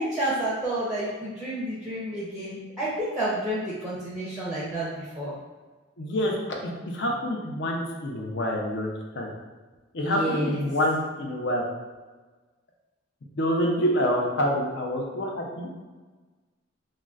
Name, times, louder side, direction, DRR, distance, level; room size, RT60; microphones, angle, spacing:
voice 1, 0.0-5.3 10.0-10.6, right 1 dB, 5° right, -7 dB, 0.5 m, -30 dB
voice 2, 6.0-6.3 6.6-9.3 9.9-11.6 13.4-15.7, equal, 60° left, 0 dB, 0.5 m, -27 dB
3.6 x 2.1 x 2.3 m, 1.3 s
head